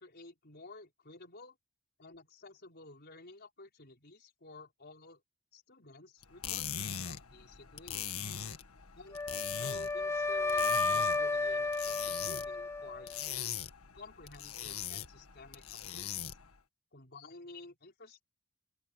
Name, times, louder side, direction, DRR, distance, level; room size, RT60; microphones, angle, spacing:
voice 1, 0.0-1.6 2.0-5.2 5.5-8.3 8.9-13.5 13.9-16.3 16.9-18.2, left 3 dB, 50° left, 5.1 m, -53 dB
sound 1, 6.2-16.6, left 9 dB, 85° left, 1.7 m, -41 dB
Wind instrument woodwind instrument, 9.1-13.2, left 3 dB, 10° left, 0.4 m, -32 dB
open air
head